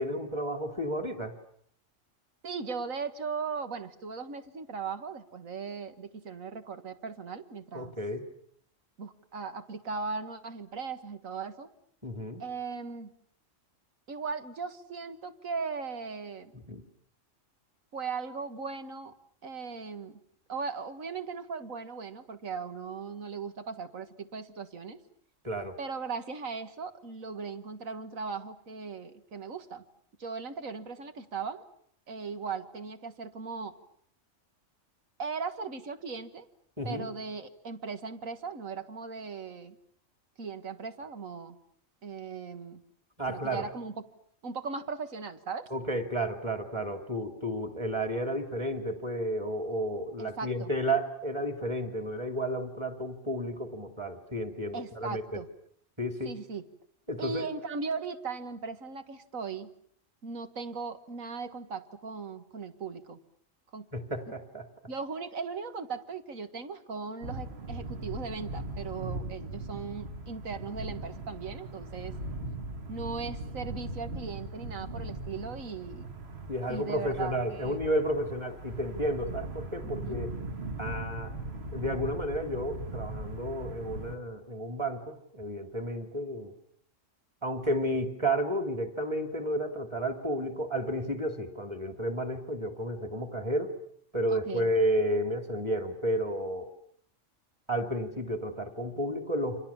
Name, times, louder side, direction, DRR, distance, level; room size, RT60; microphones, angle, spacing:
voice 1, 0.0-1.3 7.7-8.3 12.0-12.4 16.7-16.8 25.4-25.7 36.8-37.1 43.2-43.7 45.7-55.4 56.0-56.3 57.1-57.5 63.9-64.7 76.5-80.4 80.8-81.3 81.7-86.5 87.4-93.8 94.1-96.7 97.7-99.7, equal, 20° right, 6 dB, 2.9 m, -32 dB
voice 2, 2.4-8.0 9.0-11.7 12.4-13.1 14.1-16.5 17.9-19.1 19.4-20.2 20.5-25.0 25.8-29.8 30.2-31.6 32.1-33.7 35.2-36.5 36.9-39.8 40.4-41.6 42.0-42.8 43.3-43.9 44.4-45.7 50.2-50.7 54.7-55.5 56.2-56.6 57.2-59.7 60.2-63.2 63.7-63.9 64.9-72.1 72.9-76.1 76.7-77.8 79.8-80.2 94.3-94.7, right 5 dB, 85° right, 9 dB, 2.2 m, -38 dB
sound 1, 67.2-84.2, right 2 dB, 50° right, 2.0 m, -39 dB
30.0 x 25.5 x 7.3 m, 0.67 s
omnidirectional pair, 1.4 m